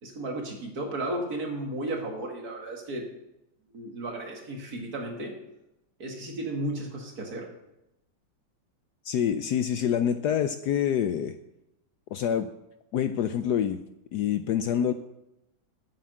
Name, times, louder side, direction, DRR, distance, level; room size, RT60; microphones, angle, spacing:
voice 1, 0.0-3.1 3.7-5.3 6.0-7.5, right 1 dB, 50° right, 2 dB, 2.3 m, -34 dB
voice 2, 9.0-11.3 12.1-12.5 12.9-13.8 14.1-14.9, left 9 dB, 70° left, 10 dB, 1.0 m, -26 dB
8.6 x 7.9 x 7.6 m, 0.87 s
omnidirectional pair, 2.1 m